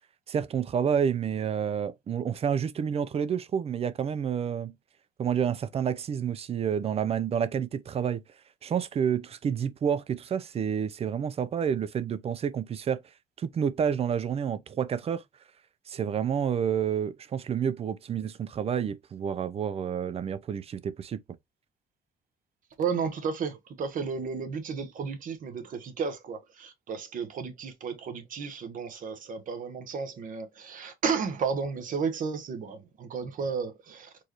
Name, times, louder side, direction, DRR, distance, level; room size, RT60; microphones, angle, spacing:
voice 1, 0.3-4.7 5.2-8.2 8.6-13.0 13.4-15.2 15.9-21.2, right 8 dB, 35° right, 0.5 m, -29 dB
voice 2, 22.8-34.1, right 5 dB, 50° right, 1.1 m, -33 dB
4.5 x 3.2 x 2.9 m
cardioid pair, 110°, 17 cm